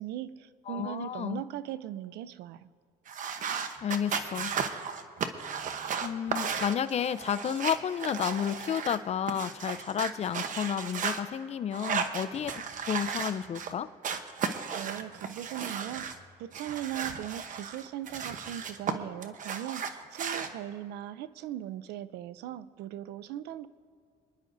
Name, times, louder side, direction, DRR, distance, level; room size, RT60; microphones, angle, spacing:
voice 1, 0.0-2.7 14.7-23.7, right 12 dB, 80° right, 16 dB, 0.5 m, -39 dB
voice 2, 0.7-1.4 3.8-4.5 6.0-13.9, left 8 dB, 40° left, 14 dB, 0.5 m, -31 dB
sound 1, 3.1-9.0 9.3-11.2 11.7-13.7 14.0-16.2 16.5-18.9 19.2-20.5, right 6 dB, 50° right, 0.9 m, -35 dB
28.5 x 10.5 x 2.6 m, 2.2 s
cardioid pair, 110°, 17 cm